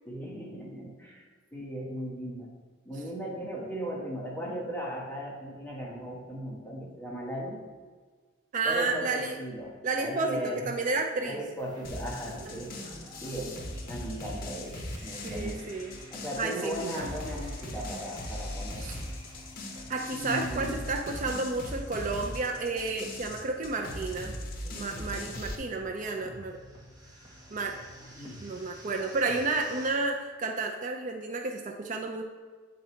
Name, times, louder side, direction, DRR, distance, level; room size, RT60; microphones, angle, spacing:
voice 1, 0.1-1.2 1.5-2.6 2.8-7.6 8.6-10.7 11.2-12.8 13.0-15.7 16.1-18.9 20.1-20.8 26.0-26.3 28.2-28.4, equal, 10° left, -4 dB, 1.1 m, -37 dB
voice 2, 8.5-9.4 9.8-11.4 12.4-12.5 15.2-16.0 16.4-17.1 18.8-19.0 19.9-24.3 24.7-26.6 27.5-27.8 28.2-32.2, right 3 dB, 45° right, 2 dB, 0.4 m, -31 dB
sound 1, 11.6-29.9, equal, 20° right, 1.5 m, -49 dB
sound 2, 11.8-25.6, left 1 dB, 55° left, 0.8 m, -39 dB
7.5 x 4.0 x 4.3 m, 1.5 s
head